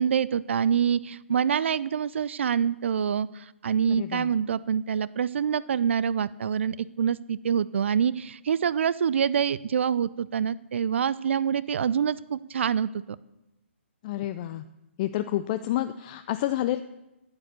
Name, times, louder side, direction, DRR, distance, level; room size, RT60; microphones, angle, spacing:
voice 1, 0.0-13.2, right 7 dB, 65° right, 19 dB, 0.4 m, -26 dB
voice 2, 3.9-4.3 14.0-14.7 15.0-16.8, left 13 dB, 35° left, 11 dB, 0.4 m, -29 dB
9.6 x 9.0 x 6.6 m, 0.97 s
hypercardioid pair, 135°, 7 cm